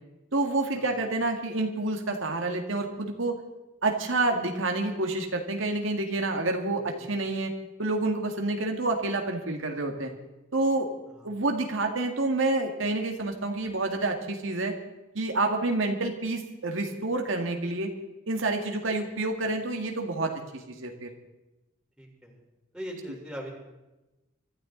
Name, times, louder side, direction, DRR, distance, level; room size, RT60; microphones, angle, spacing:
voice 1, 0.3-3.4 3.8-7.5 7.8-10.1 10.5-10.9 11.2-14.7 15.2-17.9 18.3-21.1, right 2 dB, 85° right, 3 dB, 1.9 m, -28 dB
voice 2, 6.8-7.2 11.1-11.3 19.4-19.5 22.0-22.4 22.7-23.5, equal, 5° right, -2 dB, 3.9 m, -41 dB
25.0 x 13.0 x 3.9 m, 1.0 s
head